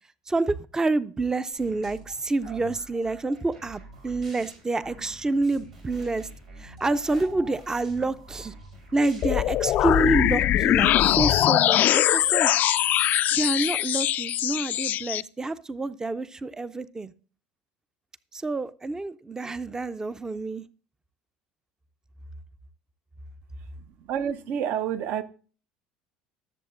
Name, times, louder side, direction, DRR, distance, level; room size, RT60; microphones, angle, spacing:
voice 1, 0.3-6.3 6.6-8.5 8.9-12.5 13.3-17.1 18.3-20.6, right 2 dB, 15° right, 0.6 m, -28 dB
sound 1, 1.5-11.1, right 2 dB, 80° right, 4.8 m, -46 dB
sound 2, 9.2-15.2, left 13 dB, 50° left, 0.3 m, -22 dB
voice 2, 23.7-25.2, right 9 dB, 60° right, 0.8 m, -29 dB
19.0 x 7.1 x 2.5 m
hypercardioid pair, 70°, 4 cm